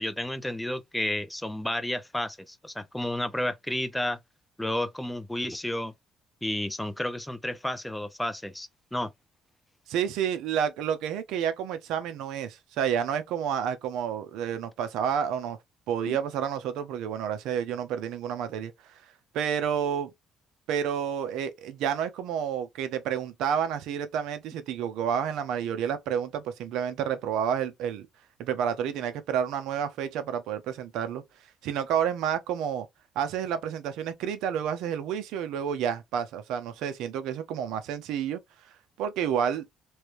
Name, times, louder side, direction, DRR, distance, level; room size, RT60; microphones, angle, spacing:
voice 1, 0.0-4.2 4.6-5.9 6.4-9.1 16.1-16.2, left 1 dB, 5° left, 0.5 m, -31 dB
voice 2, 9.9-15.6 15.9-19.0 19.3-20.1 20.7-28.1 28.4-31.2 31.6-32.9 33.2-38.4 39.0-39.7, right 8 dB, 85° right, 0.7 m, -30 dB
3.2 x 2.6 x 3.0 m
cardioid pair, 115°, 0 cm